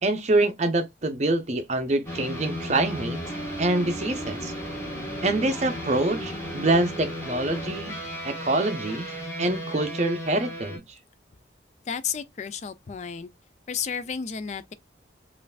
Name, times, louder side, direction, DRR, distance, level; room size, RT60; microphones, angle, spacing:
voice 1, 0.0-3.2 3.6-4.5 5.2-8.0 8.2-9.1 9.4-10.8, right 2 dB, 35° right, 0.6 m, -25 dB
sound 1, 2.1-10.8, equal, 15° left, 1.5 m, -34 dB
voice 2, 11.9-13.3 13.7-14.7, left 7 dB, 35° left, 0.3 m, -32 dB
5.4 x 2.5 x 2.3 m
head